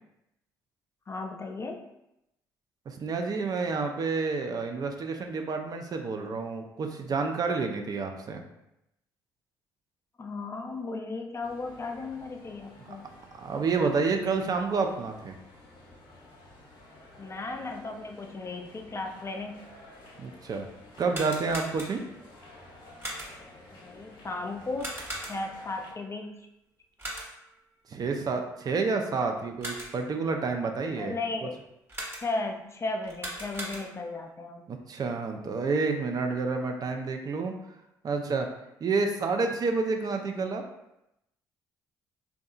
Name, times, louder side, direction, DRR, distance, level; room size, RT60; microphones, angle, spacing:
voice 1, 1.1-1.9 10.2-13.1 17.2-19.6 23.7-25.0 25.3-26.3 31.0-31.6 32.2-34.6, left 3 dB, 30° left, 4 dB, 0.4 m, -35 dB
voice 2, 2.9-8.4 12.8-13.0 13.4-15.3 20.2-20.7 21.0-22.0 27.9-31.2 34.7-37.5 38.0-38.5 38.8-40.6, right 4 dB, 45° right, 4 dB, 0.4 m, -29 dB
sound 1, 11.4-25.9, left 1 dB, 60° left, 0.7 m, -52 dB
sound 2, 21.0-22.2 23.0-23.6 24.8-25.7 27.0-27.6 29.4-30.1 31.9-32.5 33.0-34.2, right 1 dB, 25° right, 1.0 m, -39 dB
2.7 x 2.3 x 2.4 m, 0.85 s
hypercardioid pair, 55°, 9 cm